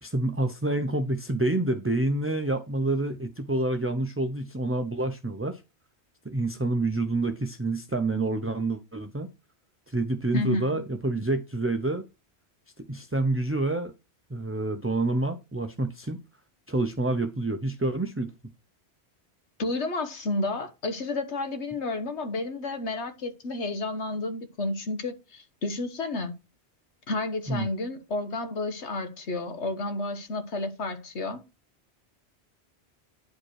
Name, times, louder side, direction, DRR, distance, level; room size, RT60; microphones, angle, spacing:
voice 1, 0.0-5.6 6.2-9.3 9.9-12.0 12.8-13.9 14.3-16.2 16.7-18.3 27.5-27.7, right 2 dB, 15° right, 0.5 m, -28 dB
voice 2, 10.3-10.8 19.6-26.3 27.1-31.4, left 2 dB, 90° left, 1.7 m, -31 dB
10.0 x 5.1 x 4.7 m
omnidirectional pair, 1.1 m